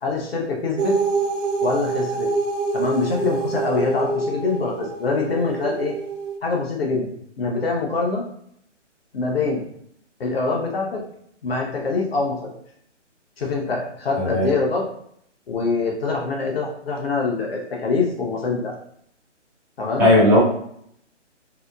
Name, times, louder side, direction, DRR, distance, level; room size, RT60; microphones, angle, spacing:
voice 1, 0.0-1.0 1.6-2.3 2.7-5.9 6.4-8.2 9.1-9.6 10.2-11.0 11.4-12.5 13.4-14.9 15.5-18.7 19.8-20.1, left 3 dB, 55° left, -1 dB, 0.8 m, -24 dB
sound 1, 0.8-6.4, right 4 dB, 85° right, 0.5 m, -26 dB
voice 2, 14.2-14.5 20.0-20.4, left 1 dB, 5° right, -15 dB, 0.6 m, -16 dB
2.8 x 2.0 x 2.2 m, 0.69 s
hypercardioid pair, 150°, 37 cm